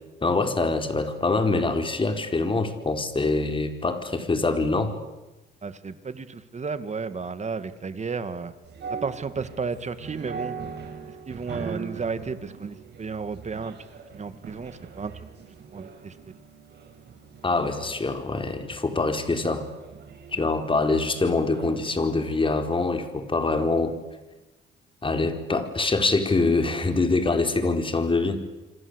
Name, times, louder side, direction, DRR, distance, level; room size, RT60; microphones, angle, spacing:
voice 1, 0.2-4.9 17.4-19.6 20.3-23.9 25.0-28.4, left 3 dB, 25° left, 7 dB, 4.5 m, -24 dB
voice 2, 5.6-8.5 9.0-10.6 11.3-13.7 14.1-15.3 15.7-16.2, right 5 dB, 35° right, 12 dB, 2.4 m, -33 dB
sound 1, 8.6-21.9, right 5 dB, 60° right, 6.3 m, -41 dB
26.5 x 26.5 x 8.3 m, 1.1 s
cardioid pair, 90°, 20 cm